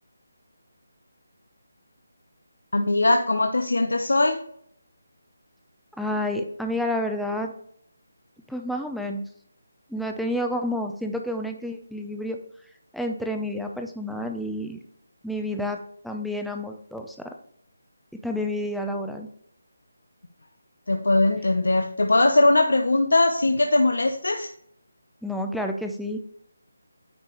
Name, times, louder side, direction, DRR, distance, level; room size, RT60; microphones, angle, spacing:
voice 1, 2.7-4.4 20.9-24.5, left 2 dB, 85° left, 5 dB, 0.7 m, -20 dB
voice 2, 6.0-7.5 8.5-9.2 9.9-12.4 12.9-14.8 15.2-15.8 16.0-17.3 18.2-19.3 25.2-26.2, left 1 dB, ahead, 3 dB, 0.5 m, -29 dB
9.1 x 5.1 x 3.0 m, 0.66 s
figure-of-eight pair, 165°, 0 cm